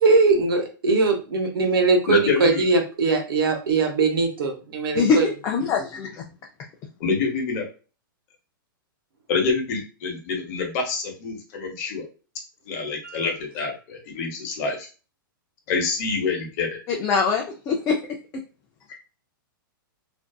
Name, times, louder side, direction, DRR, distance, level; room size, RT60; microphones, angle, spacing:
voice 1, 0.0-5.3 13.0-13.3, right 3 dB, 85° right, 4 dB, 0.8 m, -21 dB
voice 2, 2.1-2.6 7.0-7.6 9.3-12.1 12.7-14.9 15.7-16.8, left 4 dB, 45° left, 1 dB, 0.9 m, -26 dB
voice 3, 4.9-6.2 16.9-18.0, left 5 dB, 25° left, 1 dB, 0.4 m, -23 dB
2.5 x 2.4 x 2.2 m, 0.35 s
hypercardioid pair, 150°, 12 cm